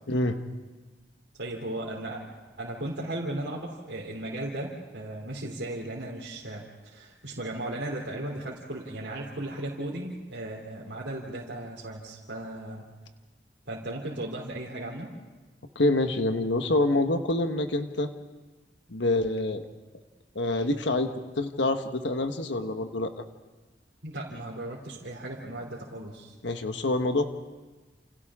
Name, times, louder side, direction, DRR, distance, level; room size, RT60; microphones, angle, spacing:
voice 1, 0.1-0.4 15.7-18.1 18.9-19.6 20.3-21.1 21.4-23.2 26.4-27.3, left 2 dB, 85° left, 7 dB, 1.3 m, -26 dB
voice 2, 1.4-2.2 2.6-12.9 13.7-15.1 24.0-26.3, right 1 dB, 80° right, -5 dB, 3.1 m, -36 dB
29.5 x 28.5 x 3.7 m, 1.3 s
head